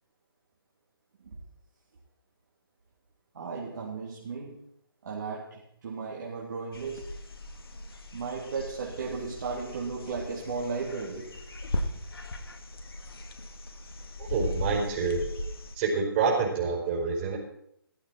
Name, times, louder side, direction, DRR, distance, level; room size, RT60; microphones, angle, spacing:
voice 1, 3.3-4.6 5.0-7.1 8.1-11.4, right 4 dB, 50° right, -4 dB, 3.4 m, -35 dB
sound 1, 6.7-15.8, left 1 dB, 70° left, 2.3 m, -38 dB
voice 2, 14.2-15.2 15.7-17.4, right 5 dB, 25° right, -3 dB, 4.7 m, -27 dB
16.0 x 14.5 x 4.5 m, 0.74 s
figure-of-eight pair, 150°, 13 cm